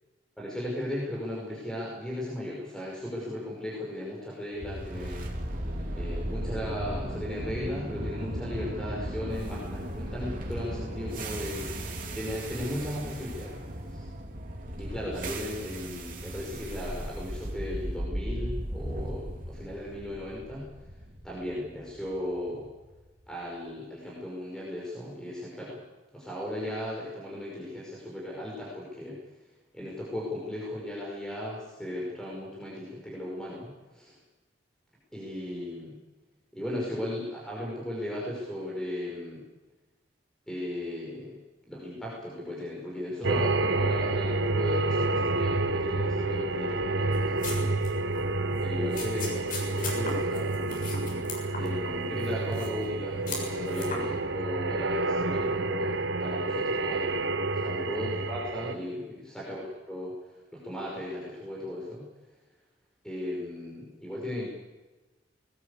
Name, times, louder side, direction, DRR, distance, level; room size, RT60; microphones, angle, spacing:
voice 1, 0.4-5.2 5.9-11.8 12.1-13.5 13.9-14.0 14.8-20.7 21.2-22.7 23.3-25.8 26.1-29.2 29.7-34.2 35.1-36.0 36.5-39.4 40.5-41.4 41.7-47.8 48.6-50.6 51.6-55.9 56.2-57.3 57.5-60.1 60.5-62.1 63.0-64.5, left 1 dB, 5° left, -5 dB, 5.5 m, -36 dB
sound 1, 4.6-22.7, right 1 dB, 50° right, 3.2 m, -36 dB
sound 2, 43.2-58.7, right 2 dB, 65° right, 1.1 m, -29 dB
sound 3, 47.1-47.9 48.1-48.3 48.9-51.9 52.2-52.9 53.3-54.0, left 3 dB, 45° left, 7.1 m, -38 dB
21.0 x 20.0 x 8.4 m, 1.2 s
head